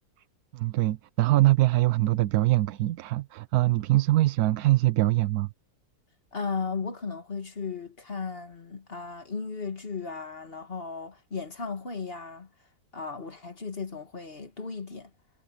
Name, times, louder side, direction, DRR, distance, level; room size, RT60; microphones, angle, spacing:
voice 1, 0.5-5.5, right 17 dB, 75° right, 1.1 m, -23 dB
voice 2, 6.3-12.5 12.9-15.1, left 5 dB, 40° left, 1.9 m, -35 dB
omnidirectional pair, 1.7 m